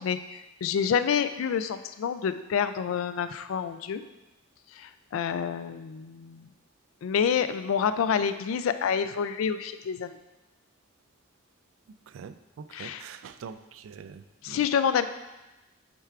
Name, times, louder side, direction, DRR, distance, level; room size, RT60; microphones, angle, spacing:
voice 1, 0.0-4.0 4.8-6.5 7.0-10.1 12.7-13.0 14.4-15.1, left 7 dB, 85° left, 12 dB, 0.3 m, -28 dB
voice 2, 12.1-14.6, right 6 dB, 85° right, 12 dB, 0.3 m, -44 dB
8.8 x 4.5 x 2.4 m, 1.1 s
head